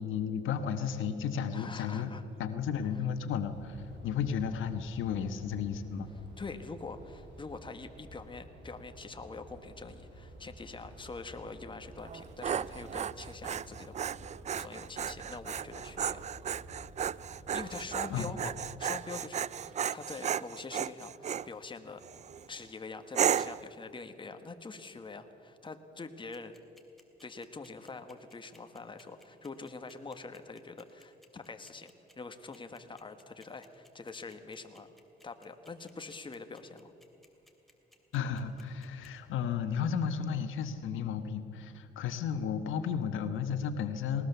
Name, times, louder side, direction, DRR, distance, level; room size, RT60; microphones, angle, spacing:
voice 1, 0.0-2.1 2.4-3.8 4.0-6.1 18.1-18.3 38.1-44.3, left 7 dB, 80° left, 8 dB, 1.3 m, -33 dB
voice 2, 1.5-2.2 6.4-13.9 14.6-16.3 17.3-22.0 22.5-26.5 27.2-34.9 35.2-36.9, left 3 dB, 25° left, 7 dB, 1.4 m, -45 dB
sound 1, 3.5-18.7, right 1 dB, 60° right, 6.5 m, -51 dB
Dog, 12.0-21.5 22.0-22.4 23.1-23.7, right 8 dB, 35° right, 0.4 m, -34 dB
sound 2, 26.3-39.1, left 1 dB, ahead, 2.7 m, -61 dB
19.5 x 19.5 x 6.9 m, 2.8 s
cardioid pair, 90°, 20 cm